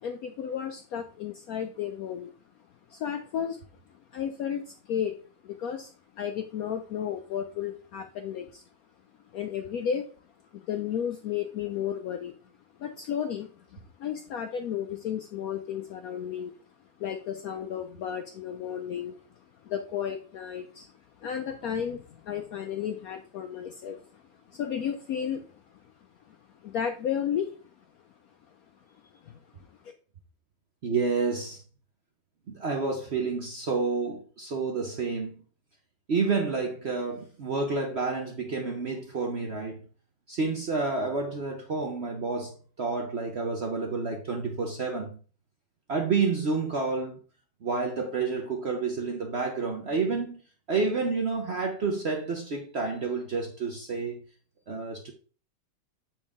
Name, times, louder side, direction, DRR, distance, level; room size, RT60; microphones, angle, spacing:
voice 1, 0.0-2.3 2.9-3.6 4.1-5.1 5.4-5.9 6.2-8.6 9.3-10.1 10.6-12.3 12.8-16.5 17.0-19.2 19.7-20.9 21.2-24.0 24.5-25.5 26.3-26.4 26.6-27.5 29.2-29.4, left 8 dB, 75° left, 0.8 m, -33 dB
voice 2, 30.8-31.6 32.5-35.3 36.1-39.8 40.3-45.2 45.9-47.2 47.6-50.4 50.7-54.2 54.7-55.1, right 4 dB, 55° right, 0.7 m, -29 dB
7.1 x 4.5 x 3.6 m
omnidirectional pair, 2.0 m